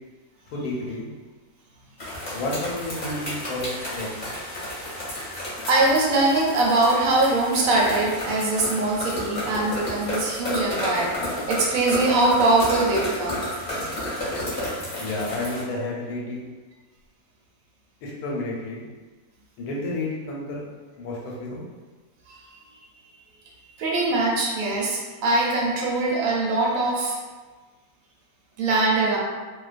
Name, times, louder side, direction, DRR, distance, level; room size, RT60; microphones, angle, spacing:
voice 1, 0.5-1.1 2.3-4.2 15.0-16.4 18.0-18.8 19.6-20.7 21.0-21.6, left 2 dB, 90° left, -3 dB, 1.1 m, -31 dB
sound 1, 2.0-15.6, left 1 dB, 40° left, 0.8 m, -32 dB
voice 2, 5.7-13.4 22.3-22.4 23.8-27.2 28.6-29.2, right 2 dB, 75° right, -3 dB, 1.0 m, -22 dB
2.4 x 2.2 x 2.4 m, 1.3 s
omnidirectional pair, 1.6 m